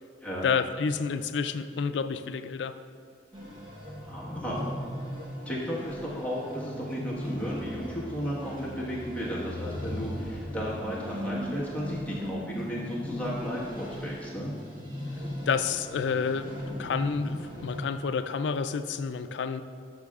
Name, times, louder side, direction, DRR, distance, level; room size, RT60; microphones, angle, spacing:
voice 1, 0.4-2.8 15.5-16.5 16.8-19.6, left 5 dB, 90° left, 11 dB, 0.4 m, -29 dB
sound 1, 3.3-17.8, left 1 dB, 30° right, 1.3 m, -38 dB
voice 2, 4.0-4.7 5.4-14.5, equal, 10° left, -7 dB, 1.4 m, -34 dB
11.5 x 6.2 x 2.4 m, 2.2 s
head